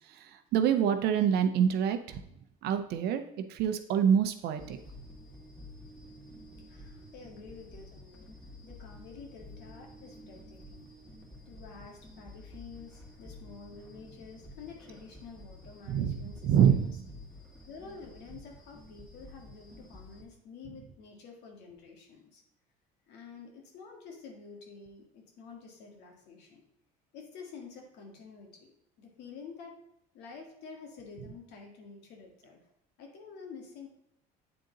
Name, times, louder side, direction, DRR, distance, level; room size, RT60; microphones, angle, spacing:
voice 1, 0.5-2.0 2.6-3.2 3.5-4.8 15.9-16.9, right 8 dB, 65° right, 8 dB, 0.7 m, -25 dB
sound 1, 4.6-20.2, left 1 dB, 5° left, 2.3 m, -50 dB
voice 2, 6.7-8.4 8.6-10.9 11.4-17.0 17.6-22.4 23.1-26.6 27.1-28.7 29.0-29.8 30.1-32.6 33.0-33.9, left 5 dB, 70° left, 2 dB, 1.8 m, -49 dB
8.9 x 3.9 x 3.9 m, 0.79 s
supercardioid pair, 95°, 18 cm